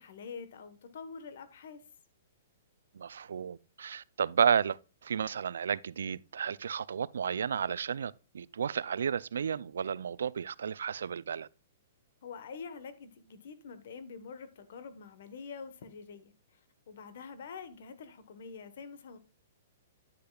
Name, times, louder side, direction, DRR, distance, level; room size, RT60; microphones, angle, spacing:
voice 1, 0.0-1.8 12.2-16.6 16.9-19.2, left 5 dB, 65° left, 1.1 m, -46 dB
voice 2, 2.9-11.5, right 7 dB, 85° right, 0.3 m, -32 dB
9.7 x 6.6 x 2.3 m
hypercardioid pair, 155°, 0 cm